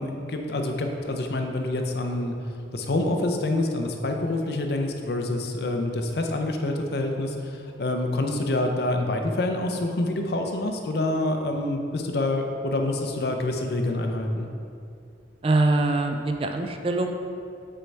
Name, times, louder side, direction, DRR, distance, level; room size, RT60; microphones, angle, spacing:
voice 1, 0.0-2.3 2.7-14.5, left 2 dB, 60° left, 3 dB, 0.6 m, -27 dB
voice 2, 15.4-17.1, right 2 dB, 30° right, 5 dB, 0.4 m, -23 dB
7.7 x 4.6 x 3.3 m, 2.5 s
head